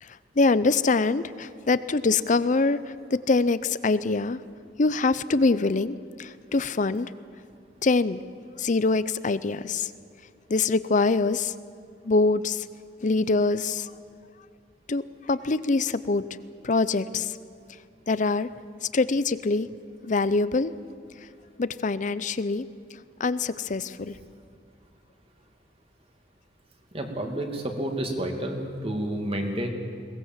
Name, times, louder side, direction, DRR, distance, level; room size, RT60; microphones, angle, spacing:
voice 1, 0.0-4.4 4.8-7.1 7.8-8.2 8.6-9.9 10.5-11.5 12.0-12.7 13.0-13.9 14.9-15.0 15.3-16.2 16.6-17.4 18.1-18.5 18.8-19.7 20.0-20.7 21.6-22.7 23.2-24.2, left 3 dB, 45° left, 15 dB, 0.6 m, -24 dB
voice 2, 26.9-29.7, right 1 dB, 35° right, 3 dB, 2.4 m, -30 dB
22.0 x 18.0 x 7.4 m, 2.3 s
head